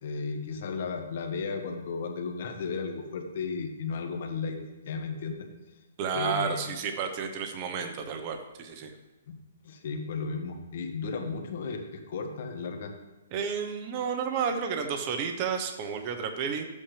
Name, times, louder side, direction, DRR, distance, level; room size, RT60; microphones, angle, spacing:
voice 1, 0.0-4.6 4.8-5.5 6.1-6.7 9.3-9.4 9.6-12.9, left 4 dB, 50° left, 3 dB, 1.7 m, -34 dB
voice 2, 6.0-8.9 13.3-16.7, right 6 dB, 30° right, 5 dB, 1.1 m, -31 dB
13.0 x 8.6 x 3.4 m, 1.1 s
hypercardioid pair, 160°, 0 cm